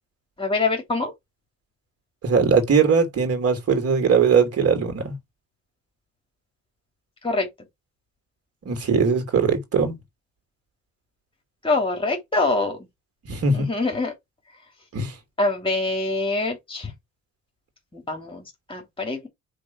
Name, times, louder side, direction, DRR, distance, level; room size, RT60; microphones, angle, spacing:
voice 1, 0.4-1.1 7.2-7.5 11.6-12.8 13.5-14.1 15.4-16.9 17.9-19.3, left 3 dB, 15° left, 2.9 m, -25 dB
voice 2, 2.2-5.1 8.6-10.0 13.3-13.7 14.9-15.1, right 5 dB, 50° right, 2.8 m, -20 dB
5.2 x 4.2 x 5.6 m
cardioid pair, 90°, 30 cm